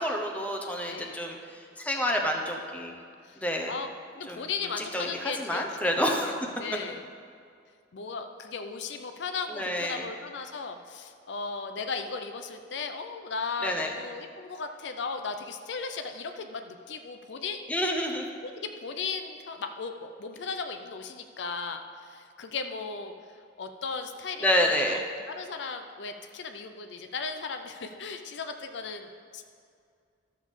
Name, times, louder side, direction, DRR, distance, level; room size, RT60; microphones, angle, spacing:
voice 1, 0.0-1.4 1.8-2.9 3.4-3.7 4.3-4.4 4.9-5.1 5.4-6.3 9.6-10.0 13.6-13.9 17.7-18.2 24.4-25.0, equal, 10° left, 1 dB, 0.8 m, -28 dB
voice 2, 0.9-1.2 3.2-3.4 3.7-3.9 4.2-7.0 7.9-17.9 18.4-23.1 23.6-29.4, left 4 dB, 65° left, 6 dB, 0.5 m, -36 dB
13.0 x 6.6 x 3.6 m, 2.2 s
head